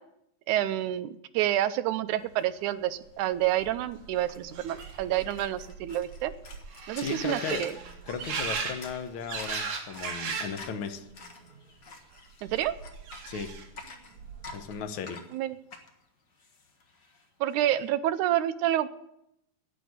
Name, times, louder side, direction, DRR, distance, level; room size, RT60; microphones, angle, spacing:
voice 1, 0.5-6.3 6.9-7.7 12.4-12.8 15.3-15.6 17.4-18.9, right 13 dB, 80° right, 10 dB, 1.8 m, -28 dB
sound 1, 3.1-3.2 3.4-10.6 11.0-11.6 12.5-13.8 14.2-14.8, right 5 dB, 60° right, 3.0 m, -38 dB
sound 2, 3.4-3.5 3.7-17.6, left 3 dB, 50° left, 1.3 m, -50 dB
voice 2, 7.0-7.7 8.1-11.0 13.3-13.5 14.5-15.2, left 6 dB, 85° left, 7 dB, 1.1 m, -36 dB
11.0 x 9.1 x 9.3 m, 0.81 s
omnidirectional pair, 4.0 m